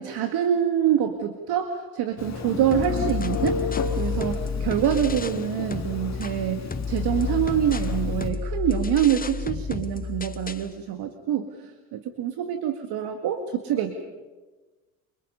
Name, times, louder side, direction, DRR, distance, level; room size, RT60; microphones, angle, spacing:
voice 1, 0.0-3.7 4.0-14.0, right 10 dB, 60° right, 6 dB, 2.0 m, -26 dB
Telephone, 2.2-8.3, left 4 dB, 35° left, 2.5 m, -32 dB
sound 1, 2.7-5.4 5.7-10.7, left 6 dB, 20° left, 1.1 m, -31 dB
29.0 x 24.5 x 5.5 m, 1.3 s
hypercardioid pair, 65°, 44 cm